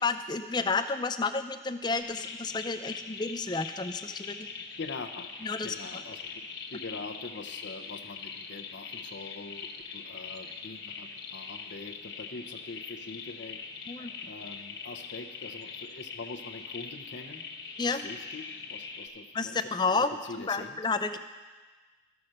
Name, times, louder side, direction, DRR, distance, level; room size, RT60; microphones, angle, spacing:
voice 1, 0.0-4.5 5.4-5.8 13.9-14.1 17.8-18.0 19.3-20.1 20.5-21.2, left 4 dB, 25° left, 10 dB, 0.4 m, -30 dB
sound 1, 2.0-19.1, left 5 dB, 65° left, 1.2 m, -42 dB
voice 2, 4.8-5.3 5.6-6.4 6.7-13.7 14.3-17.4 17.9-20.8, left 3 dB, 90° left, 7 dB, 0.8 m, -43 dB
13.5 x 5.9 x 6.5 m, 1.3 s
head